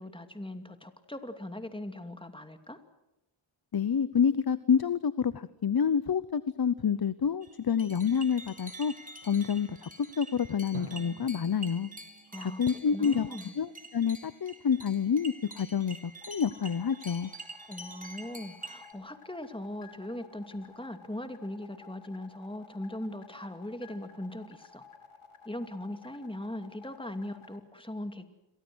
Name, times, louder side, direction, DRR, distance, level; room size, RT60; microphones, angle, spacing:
voice 1, 0.0-2.8 12.3-12.6 12.9-13.5 17.7-24.8 25.4-28.3, left 1 dB, 10° left, 7 dB, 2.5 m, -40 dB
voice 2, 3.7-8.9 9.2-11.9 12.4-13.3 13.6-17.3, left 7 dB, 50° left, 16 dB, 0.8 m, -28 dB
sound 1, 7.4-18.9, right 2 dB, 15° right, 3.8 m, -47 dB
Drum, 10.7-13.6, right 4 dB, 70° right, 2.4 m, -49 dB
sound 2, 16.2-27.6, left 5 dB, 85° left, 4.1 m, -54 dB
29.0 x 23.0 x 6.3 m, 0.93 s
wide cardioid pair, 75°, 49 cm